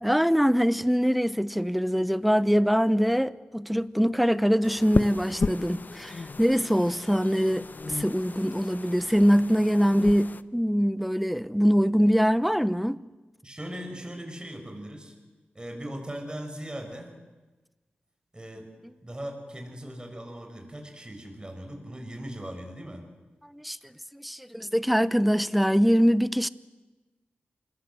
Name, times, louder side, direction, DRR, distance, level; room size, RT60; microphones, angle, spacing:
voice 1, 0.0-13.0 23.5-23.8 24.1-26.5, equal, ahead, 0.9 m, -23 dB
sound 1, 4.6-10.4, left 3 dB, 50° left, 0.8 m, -34 dB
voice 2, 13.4-15.2 15.5-17.1 18.3-18.7 19.0-23.0, right 1 dB, 20° right, 7.0 m, -39 dB
26.0 x 21.0 x 8.0 m
cardioid pair, 50°, 4 cm